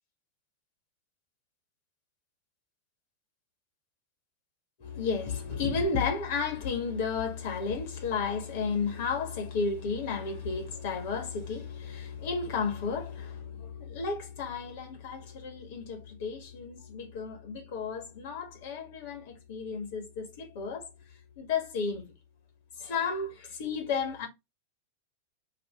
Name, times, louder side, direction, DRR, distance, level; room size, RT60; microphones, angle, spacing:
voice 1, 4.8-20.9 21.4-22.0 22.8-24.3, left 5 dB, 50° left, 1.5 m, -33 dB
4.9 x 2.6 x 3.5 m
figure-of-eight pair, 90°, 0 cm